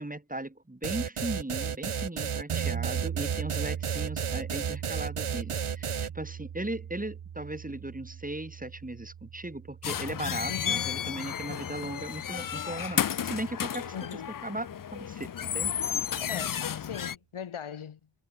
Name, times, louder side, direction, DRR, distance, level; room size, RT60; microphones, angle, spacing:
voice 1, 0.0-14.0 14.4-15.7 16.4-16.5, right 2 dB, 15° right, 1.9 m, -37 dB
sound 1, 0.8-6.1, right 7 dB, 85° right, 1.4 m, -32 dB
sound 2, 2.5-12.5, right 8 dB, 65° right, 0.8 m, -39 dB
sound 3, 9.8-17.2, left 9 dB, 45° left, 0.5 m, -32 dB
voice 2, 10.5-10.9 13.9-14.4 16.2-18.0, left 8 dB, 85° left, 1.1 m, -40 dB
wide cardioid pair, 70°, 48 cm